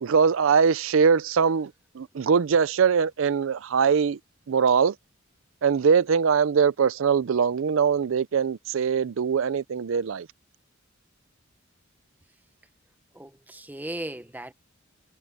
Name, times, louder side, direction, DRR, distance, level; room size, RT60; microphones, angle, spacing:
voice 1, 0.0-1.7 2.0-4.2 4.5-4.9 5.6-10.3, right 6 dB, 70° right, 0.4 m, -22 dB
voice 2, 13.1-14.5, right 1 dB, 10° right, 0.9 m, -37 dB
head